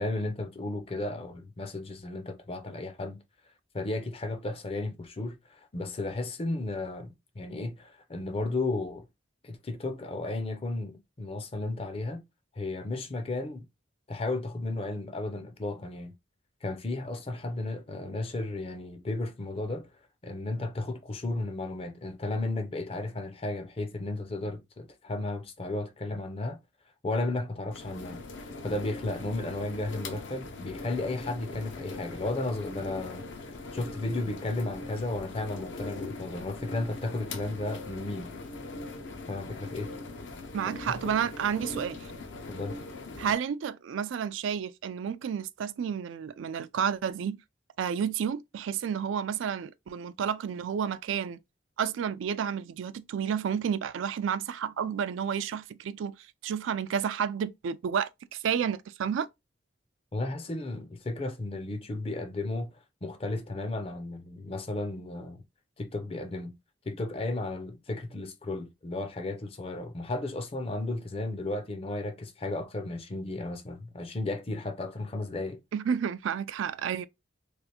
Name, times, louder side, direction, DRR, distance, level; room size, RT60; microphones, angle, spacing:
voice 1, 0.0-3.2 3.7-9.1 9.4-12.2 12.5-13.7 14.1-16.1 16.6-19.9 20.2-26.6 27.0-38.3 39.3-39.9 41.0-41.2 42.5-42.8 60.1-62.7 63.0-65.4 65.8-66.6 66.9-75.6, left 2 dB, 30° left, 0.5 m, -34 dB
sound 1, 27.7-43.3, left 3 dB, 70° left, 0.6 m, -41 dB
voice 2, 40.5-42.1 43.2-47.4 47.8-51.4 51.8-59.3 75.7-77.1, right 7 dB, 85° right, 0.3 m, -31 dB
3.3 x 2.4 x 2.8 m
head